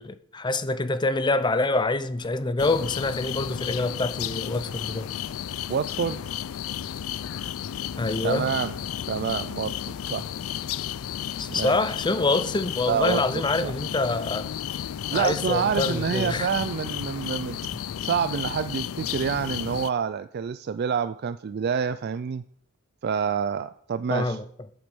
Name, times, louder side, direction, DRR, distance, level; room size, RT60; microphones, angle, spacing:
voice 1, 0.0-5.1 8.0-8.5 11.4-14.5 15.1-16.5 17.7-17.8 24.1-24.4, left 2 dB, 20° left, 0.6 m, -26 dB
sound 1, 2.6-19.9, left 10 dB, 80° left, 0.4 m, -33 dB
voice 2, 5.7-6.2 8.2-8.7 9.1-9.7 10.0-10.3 11.5-11.8 12.9-13.2 13.6-13.7 15.1-17.6 18.0-22.4 23.0-24.4, right 7 dB, 50° right, 0.3 m, -27 dB
8.8 x 7.9 x 6.2 m
head